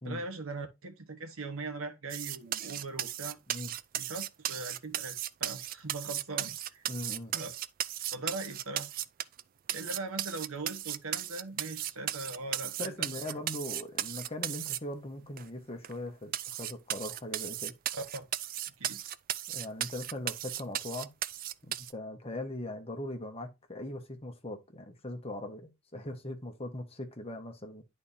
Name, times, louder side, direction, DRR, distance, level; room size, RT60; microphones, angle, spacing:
voice 1, 0.0-3.4 3.9-6.8 7.3-7.5 8.1-8.9 9.7-13.1 17.9-18.3 18.8-19.0, right 3 dB, 70° right, 1.1 m, -40 dB
sound 1, 2.1-9.4 9.7-14.8 15.4-15.5 15.8-15.9 16.3-21.9, right 12 dB, 40° right, 0.3 m, -36 dB
voice 2, 6.9-7.3 12.8-17.7 19.5-21.1 21.7-27.8, left 1 dB, 25° left, 1.2 m, -40 dB
10.5 x 4.3 x 2.7 m
head